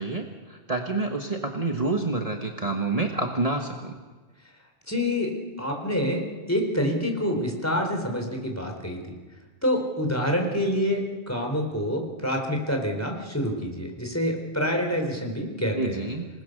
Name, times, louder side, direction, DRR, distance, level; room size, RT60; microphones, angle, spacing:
voice 1, 0.0-3.9 15.7-16.3, right 3 dB, 35° right, 2 dB, 1.6 m, -28 dB
voice 2, 4.9-6.2 6.5-9.1 9.6-16.0, equal, 15° left, 2 dB, 4.1 m, -27 dB
27.5 x 20.0 x 6.7 m, 1.3 s
omnidirectional pair, 1.1 m